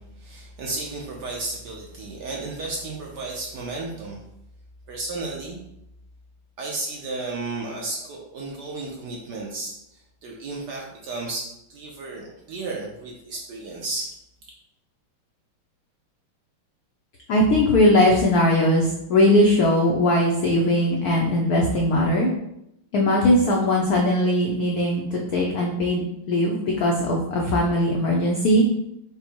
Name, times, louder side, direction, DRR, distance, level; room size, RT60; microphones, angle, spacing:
voice 1, 0.0-4.2 4.9-5.6 6.6-14.1, right 2 dB, 70° right, -2 dB, 1.0 m, -33 dB
voice 2, 17.3-22.3 22.9-28.6, left 1 dB, 85° left, -1 dB, 0.8 m, -20 dB
5.2 x 2.1 x 4.4 m, 0.81 s
omnidirectional pair, 2.4 m